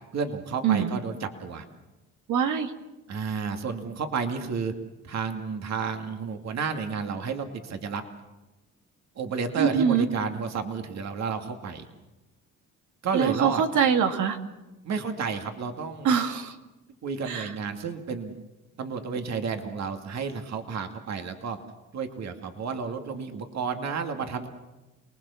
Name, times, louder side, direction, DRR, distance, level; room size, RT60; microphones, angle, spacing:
voice 1, 0.1-1.6 3.1-4.7 5.0-8.0 9.2-11.9 13.0-13.6 14.8-16.2 17.0-18.3 18.8-21.6 21.9-24.5, right 5 dB, 60° right, 6 dB, 2.3 m, -31 dB
voice 2, 2.3-2.7 9.6-10.1 13.1-14.4 16.0-16.6 17.3-17.5, right 7 dB, 80° right, 6 dB, 2.1 m, -23 dB
28.5 x 20.0 x 7.1 m, 1.1 s
cardioid pair, 90°, 30 cm